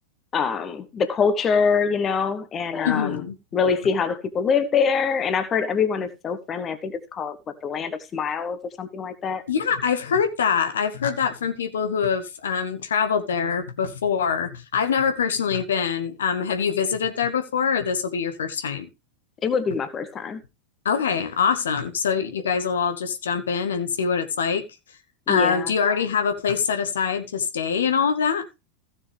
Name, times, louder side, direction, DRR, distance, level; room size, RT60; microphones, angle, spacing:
voice 1, 0.3-3.2 3.5-7.4 7.6-9.4 19.4-20.4 25.3-25.7, left 6 dB, 25° left, 1.3 m, -24 dB
voice 2, 2.8-3.3 9.5-18.9 20.8-24.7 25.3-28.4, left 6 dB, 65° left, 1.1 m, -24 dB
15.5 x 6.7 x 3.3 m
figure-of-eight pair, 90°, 0 cm